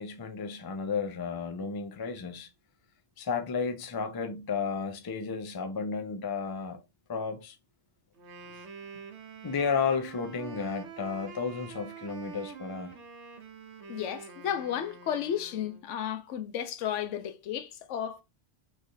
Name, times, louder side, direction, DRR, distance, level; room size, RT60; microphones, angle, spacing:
voice 1, 0.0-2.5 3.2-6.8 7.1-7.6 8.5-8.6 9.4-13.0, left 5 dB, 35° left, 0.4 m, -33 dB
Wind instrument woodwind instrument, 8.2-15.9, right 6 dB, 70° right, 1.1 m, -46 dB
voice 2, 13.9-18.2, left 9 dB, 80° left, 0.9 m, -33 dB
3.9 x 3.1 x 2.5 m
omnidirectional pair, 1.2 m